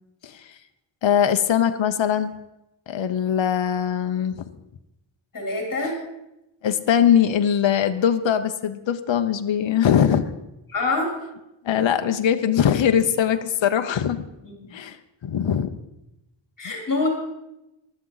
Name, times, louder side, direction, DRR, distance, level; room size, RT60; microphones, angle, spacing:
voice 1, 1.0-2.4 2.9-4.4 6.6-10.3 11.6-14.3 14.7-15.0 15.2-15.8, left 9 dB, 65° left, 8 dB, 0.8 m, -21 dB
voice 2, 5.3-6.0 10.7-11.1 14.4-14.7 16.6-17.1, left 3 dB, 40° left, 0 dB, 3.3 m, -25 dB
15.0 x 12.0 x 3.9 m, 0.92 s
wide cardioid pair, 145°, 49 cm